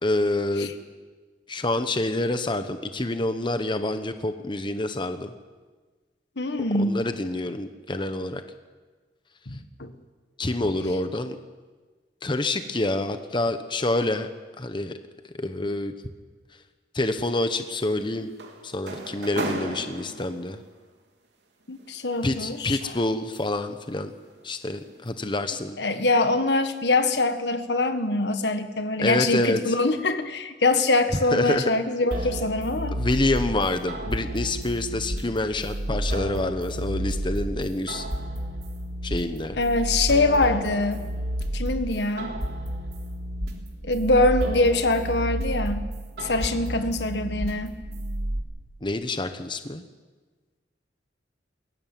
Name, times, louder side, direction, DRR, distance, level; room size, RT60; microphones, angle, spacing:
voice 1, 0.0-0.7 1.5-5.3 6.7-8.4 10.4-11.4 12.2-14.3 14.6-15.0 15.4-15.9 16.9-18.3 18.6-20.6 22.2-24.1 24.4-25.8 29.0-29.6 31.3-31.7 32.9-38.1 39.0-39.6 48.8-49.8, left 2 dB, 25° left, 9 dB, 1.0 m, -27 dB
voice 2, 6.4-7.0 9.5-9.9 21.7-22.9 25.8-32.9 39.6-41.0 41.5-42.4 43.8-45.9 46.2-47.8, left 2 dB, 75° left, 9 dB, 1.7 m, -24 dB
sound 1, 17.7-20.7 21.8-23.7 24.2-24.4 24.9-25.1, right 2 dB, 85° right, 3.1 m, -36 dB
sound 2, 32.1-48.4, right 1 dB, 65° right, 3.5 m, -31 dB
22.0 x 17.0 x 9.2 m, 1.4 s
head